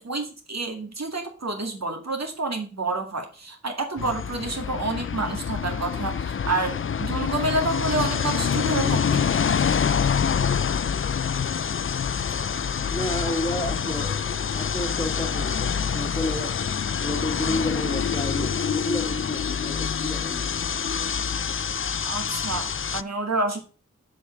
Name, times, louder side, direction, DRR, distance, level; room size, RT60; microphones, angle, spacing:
voice 1, 0.0-9.2 22.0-23.6, right 2 dB, 60° right, 3 dB, 2.0 m, -29 dB
sound 1, 4.0-23.0, left 7 dB, 45° left, 0.4 m, -26 dB
voice 2, 12.9-16.5 17.0-20.5, left 1 dB, 15° left, 4 dB, 1.7 m, -31 dB
7.0 x 5.4 x 6.2 m, 0.37 s
wide cardioid pair, 75°, 29 cm